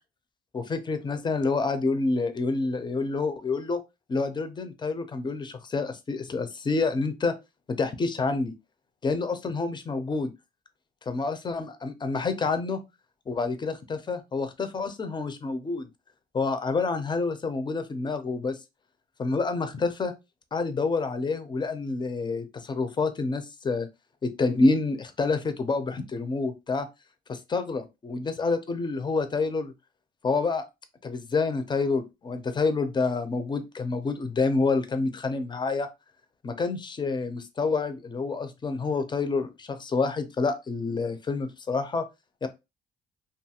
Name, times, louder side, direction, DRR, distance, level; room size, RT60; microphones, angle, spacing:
voice 1, 0.5-3.8 4.1-7.3 7.7-8.5 9.0-10.3 11.1-12.8 13.3-15.9 16.3-18.6 19.2-20.1 20.5-23.9 24.2-26.9 27.3-29.7 30.2-30.6 31.0-35.9 36.4-42.1 42.4-42.5, left 3 dB, 25° left, 0.5 m, -28 dB
2.6 x 2.3 x 2.8 m
cardioid pair, 90°, 20 cm